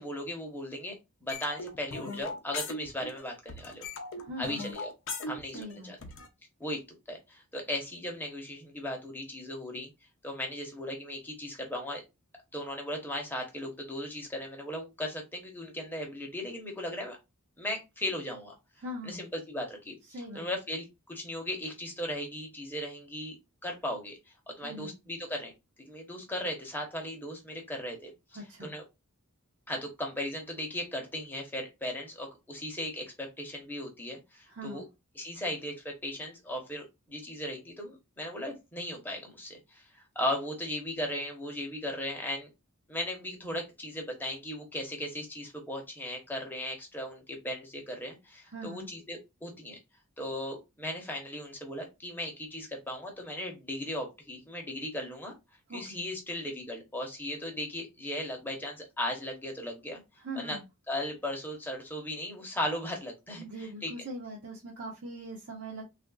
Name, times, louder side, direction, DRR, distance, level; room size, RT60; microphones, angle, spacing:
voice 1, 0.0-3.9 4.4-4.9 5.2-6.0 6.6-6.8 7.1-9.9 10.2-12.0 12.5-17.2 17.6-18.5 19.0-19.9 20.3-23.4 23.6-24.2 24.5-25.5 25.8-28.1 28.6-28.8 29.7-34.8 35.2-42.5 42.9-49.8 50.2-55.3 55.7-60.0 60.4-60.6 60.9-63.9, left 1 dB, 10° left, 1 dB, 0.9 m, -37 dB
sound 1, 1.3-3.2 3.5-6.3, left 3 dB, 60° left, 0.6 m, -39 dB
voice 2, 4.2-4.7 5.5-6.1 18.8-19.2 20.1-20.5 24.6-25.0 28.3-28.7 34.5-34.8 48.5-48.9 55.7-56.1 60.2-60.6 63.4-65.8, right 1 dB, 50° right, -5 dB, 0.8 m, -41 dB
3.5 x 2.5 x 2.3 m, 0.23 s
head